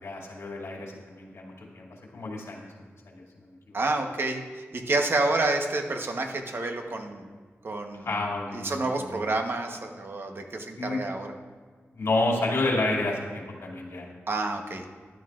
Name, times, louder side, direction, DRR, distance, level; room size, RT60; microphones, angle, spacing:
voice 1, 0.0-1.9 2.1-2.7 3.1-3.2 3.7-3.8 8.0-9.0 10.8-11.0 11.9-14.1, left 2 dB, 75° left, -2 dB, 2.7 m, -30 dB
voice 2, 3.7-7.3 7.6-8.1 8.5-11.3 14.3-14.8, right 2 dB, 55° right, 3 dB, 1.1 m, -29 dB
15.5 x 12.0 x 2.5 m, 1.6 s
wide cardioid pair, 95°, 5 cm